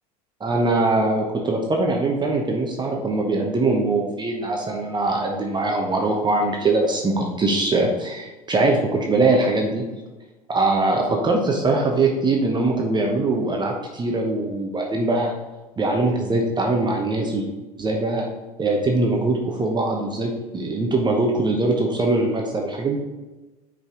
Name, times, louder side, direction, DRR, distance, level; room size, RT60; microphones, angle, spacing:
voice 1, 0.4-9.9 10.5-15.3 15.8-17.5 17.8-18.3 18.6-23.0, right 2 dB, 20° right, 1 dB, 1.1 m, -22 dB
5.4 x 5.2 x 3.8 m, 1.1 s
hypercardioid pair, 80°, 20 cm